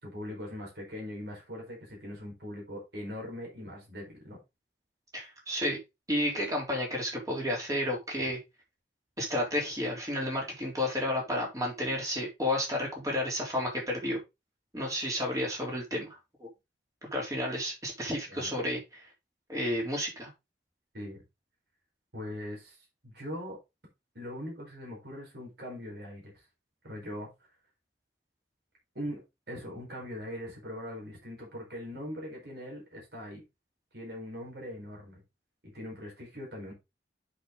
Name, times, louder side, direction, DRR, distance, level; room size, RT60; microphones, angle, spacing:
voice 1, 0.0-4.4 18.3-18.5 20.9-21.2 22.1-23.6 24.1-26.4 26.8-27.3 28.9-29.2 29.5-33.4 33.9-35.2 35.6-36.7, left 1 dB, 60° right, 4.6 m, -41 dB
voice 2, 5.1-5.8 6.1-8.4 9.2-14.2 14.7-16.1 16.4-16.5 17.0-19.1 19.5-20.3, left 1 dB, 20° right, 3.5 m, -31 dB
7.8 x 6.3 x 3.8 m
head